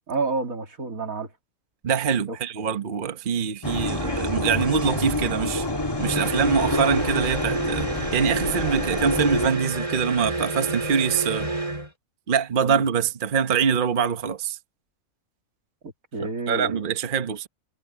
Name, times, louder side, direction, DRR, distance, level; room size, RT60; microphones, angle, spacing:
voice 1, 0.1-1.3 2.3-2.4 12.6-12.8 15.8-16.8, right 3 dB, 80° right, 2.9 m, -30 dB
voice 2, 1.8-5.7 6.0-11.5 12.3-14.6 16.5-17.5, right 6 dB, 40° right, 1.1 m, -24 dB
sound 1, 3.6-9.5, left 2 dB, 15° left, 2.1 m, -28 dB
sound 2, 6.0-11.9, right 2 dB, 20° right, 3.7 m, -29 dB
omnidirectional pair, 1.4 m